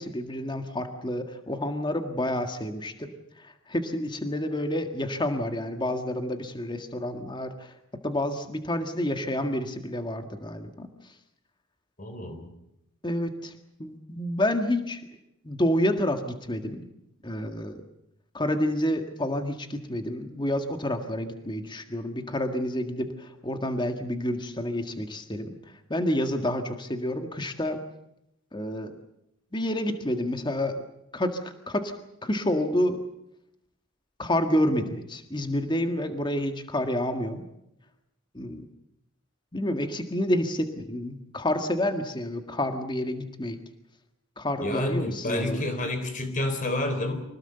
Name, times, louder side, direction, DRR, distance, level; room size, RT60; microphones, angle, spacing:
voice 1, 0.0-3.1 3.4-11.1 13.0-13.5 13.8-15.0 15.4-16.8 17.2-17.8 18.3-27.8 28.5-28.9 29.5-30.8 31.1-31.9 32.2-33.0 34.2-37.4 38.3-38.6 39.5-43.6 44.4-45.6, left 1 dB, 20° left, 6 dB, 1.8 m, -29 dB
voice 2, 12.0-12.5 44.6-47.2, left 1 dB, 40° left, 9 dB, 3.8 m, -29 dB
25.5 x 19.0 x 7.9 m, 0.83 s
head